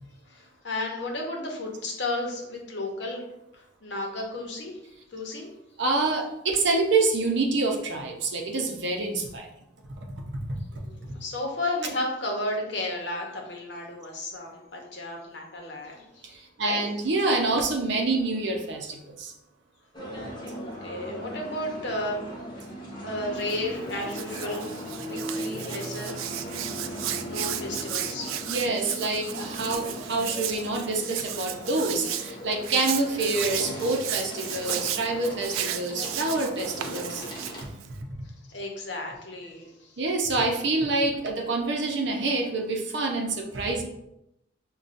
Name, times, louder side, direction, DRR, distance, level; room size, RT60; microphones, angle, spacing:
voice 1, 0.3-3.2 3.5-4.8 5.1-5.6 10.7-16.2 16.6-16.9 20.5-22.2 23.0-24.7 25.1-26.4 27.3-28.3 38.5-40.0, left 1 dB, 60° left, 0 dB, 0.8 m, -33 dB
voice 2, 5.8-9.5 10.0-10.1 10.5-10.6 16.2-19.3 28.5-37.2 40.0-43.8, right 3 dB, 60° right, 1 dB, 0.6 m, -27 dB
sound 1, 19.9-37.6, equal, 25° left, 0.6 m, -38 dB
Hands, 23.4-38.0, right 10 dB, 90° right, 0.3 m, -35 dB
5.3 x 2.3 x 2.5 m, 0.84 s
head